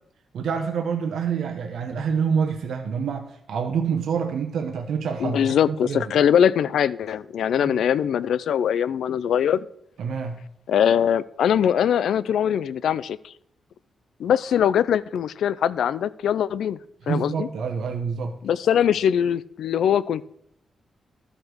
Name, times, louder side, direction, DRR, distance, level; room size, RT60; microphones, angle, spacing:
voice 1, 0.3-6.0 7.6-7.8 10.0-10.4 17.0-18.4, right 6 dB, 80° right, 4 dB, 0.9 m, -27 dB
voice 2, 5.2-9.7 10.7-13.3 14.2-16.8 17.1-17.5 18.4-20.3, left 9 dB, 80° left, 19 dB, 0.4 m, -22 dB
12.5 x 5.0 x 6.2 m, 0.75 s
wide cardioid pair, 175°, 0 cm